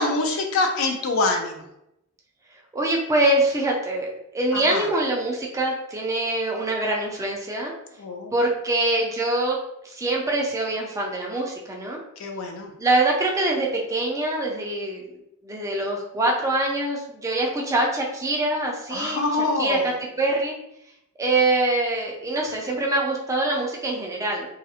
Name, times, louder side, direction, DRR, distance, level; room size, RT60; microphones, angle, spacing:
voice 1, 0.0-1.6 4.5-4.9 8.0-8.3 12.2-12.7 18.9-19.8, left 2 dB, 65° left, 3 dB, 0.4 m, -25 dB
voice 2, 2.7-7.7 8.3-9.6 9.8-12.0 12.8-15.0 15.4-20.5 21.2-24.5, right 2 dB, 15° right, -1 dB, 0.3 m, -24 dB
2.4 x 2.0 x 2.7 m, 0.84 s
head